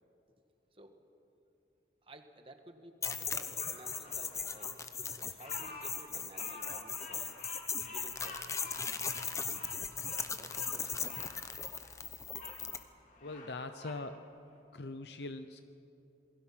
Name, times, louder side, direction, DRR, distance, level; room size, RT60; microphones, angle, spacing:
voice 1, 0.7-1.0 2.0-4.8 5.1-7.4 7.9-8.8 10.3-11.1 13.6-13.9, right 1 dB, 30° right, 6 dB, 1.5 m, -55 dB
sound 1, 3.0-12.8, left 6 dB, 15° left, 0.9 m, -38 dB
Bird vocalization bird call bird song, 3.6-12.6 13.0-14.0, left 3 dB, 45° left, 3.7 m, -50 dB
voice 2, 13.2-14.2 14.7-15.6, left 2 dB, 75° left, 9 dB, 0.8 m, -42 dB
28.0 x 21.0 x 5.9 m, 2.7 s
head